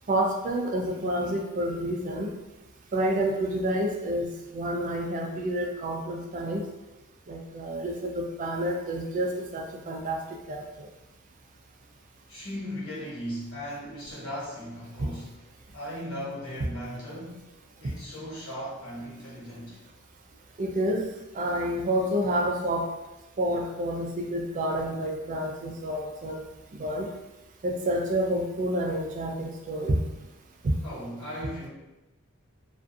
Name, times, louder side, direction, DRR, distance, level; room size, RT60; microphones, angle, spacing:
voice 1, 0.1-2.3 2.9-6.6 7.3-10.2 10.5-10.9 15.0-15.1 17.8-17.9 20.6-21.0 21.3-22.9 23.4-26.4 26.8-27.1 27.6-30.0 30.6-30.7, right 1 dB, 35° right, 1 dB, 0.3 m, -29 dB
voice 2, 12.3-15.3 15.7-17.5 17.8-19.8 30.8-31.7, equal, 70° left, -8 dB, 1.4 m, -37 dB
2.4 x 2.4 x 2.5 m, 0.99 s
head